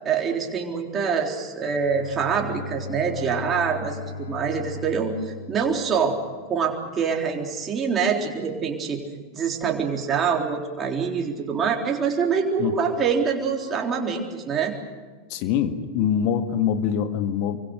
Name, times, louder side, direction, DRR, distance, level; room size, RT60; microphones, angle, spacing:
voice 1, 0.0-6.2 6.5-9.0 9.3-14.7, right 6 dB, 20° right, 1 dB, 3.7 m, -25 dB
Bowed string instrument, 1.6-6.6, left 3 dB, 65° left, 2.7 m, -38 dB
voice 2, 15.3-17.6, left 8 dB, 45° left, 8 dB, 1.9 m, -24 dB
26.5 x 24.5 x 6.7 m, 1.4 s
figure-of-eight pair, 90°, 0 cm